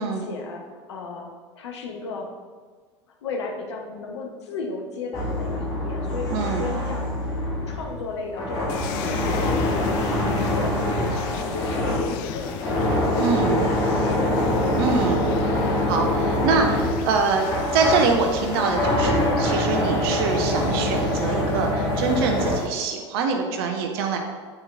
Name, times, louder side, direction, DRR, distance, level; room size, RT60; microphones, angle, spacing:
voice 1, 0.0-2.3 3.2-6.3 6.6-7.1 7.7-14.6, left 3 dB, 65° left, 2 dB, 0.8 m, -35 dB
sound 1, 5.1-22.6, left 1 dB, 25° left, 1.6 m, -24 dB
voice 2, 6.3-6.7 13.1-13.6 14.8-15.2 15.8-24.2, right 4 dB, 55° right, 4 dB, 0.7 m, -24 dB
sound 2, 8.7-22.7, left 10 dB, 50° left, 0.4 m, -35 dB
8.6 x 4.4 x 2.5 m, 1.5 s
figure-of-eight pair, 80°, 15 cm